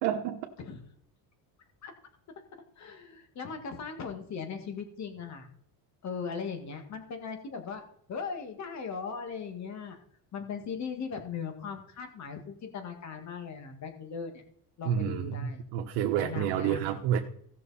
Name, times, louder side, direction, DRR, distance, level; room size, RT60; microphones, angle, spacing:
voice 1, 0.0-0.5 14.8-17.2, right 10 dB, 90° right, 3 dB, 1.2 m, -29 dB
voice 2, 2.8-5.5 6.0-7.8 8.1-10.0 10.3-14.4 14.8-15.6 16.2-16.8, left 5 dB, 40° left, 6 dB, 2.0 m, -38 dB
16.5 x 6.4 x 4.2 m, 0.66 s
cardioid pair, 160°, 45 cm